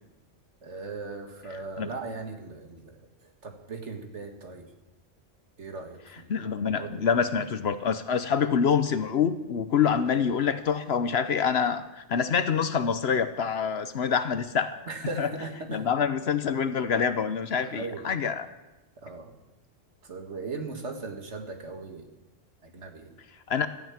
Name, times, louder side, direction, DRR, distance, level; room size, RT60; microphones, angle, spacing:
voice 1, 0.6-4.7 5.6-6.3 6.8-7.1 9.8-9.9 14.9-15.9 17.6-18.1 19.0-19.3 20.0-22.1 22.6-23.2, right 3 dB, 65° right, 5 dB, 2.0 m, -38 dB
voice 2, 6.3-14.8 15.2-15.3 15.7-18.5 23.5-23.7, left 7 dB, 60° left, 11 dB, 1.0 m, -26 dB
14.0 x 9.3 x 8.8 m, 1.0 s
omnidirectional pair, 1.3 m